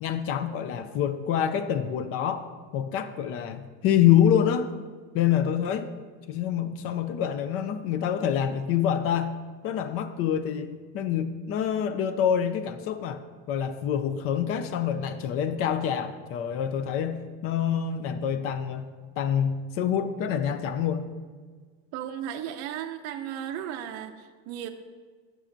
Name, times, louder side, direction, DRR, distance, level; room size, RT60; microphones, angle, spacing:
voice 1, 0.0-4.7 5.1-5.9 6.3-9.3 9.6-13.2 13.5-18.9 19.2-21.1, left 9 dB, 45° left, 10 dB, 0.4 m, -26 dB
voice 2, 21.9-24.7, right 10 dB, 50° right, 5 dB, 0.5 m, -35 dB
11.0 x 6.2 x 2.6 m, 1.5 s
cardioid pair, 140°, 33 cm